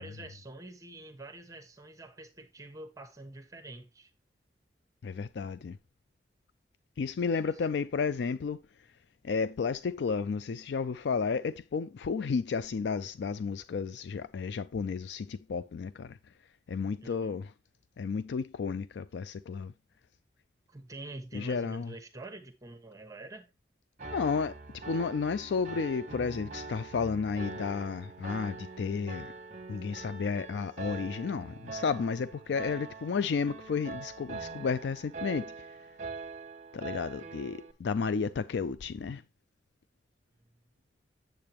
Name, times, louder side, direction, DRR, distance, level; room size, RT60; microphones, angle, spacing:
voice 1, 0.0-4.1 7.4-7.5 17.0-17.3 20.7-23.5, right 2 dB, 20° right, 1.0 m, -46 dB
voice 2, 5.0-5.8 7.0-8.6 9.2-16.2 16.7-17.5 18.0-19.7 21.3-21.9 24.1-29.3 29.7-35.7 36.7-39.2, left 5 dB, 75° left, 0.4 m, -32 dB
Piano, 24.0-37.7, right 4 dB, 40° right, 0.9 m, -43 dB
8.6 x 7.7 x 3.0 m
head